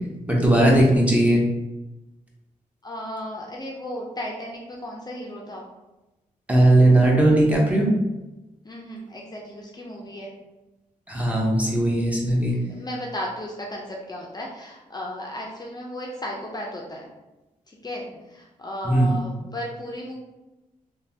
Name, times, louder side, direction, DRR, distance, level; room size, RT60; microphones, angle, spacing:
voice 1, 0.3-1.4 6.5-7.9 11.1-12.5 18.8-19.2, right 1 dB, 10° right, -3 dB, 0.8 m, -18 dB
voice 2, 2.8-5.7 8.6-10.3 12.5-17.1 17.7-20.2, left 1 dB, 30° left, -1 dB, 0.5 m, -35 dB
3.1 x 2.2 x 2.7 m, 1.0 s
cardioid pair, 70°, 14 cm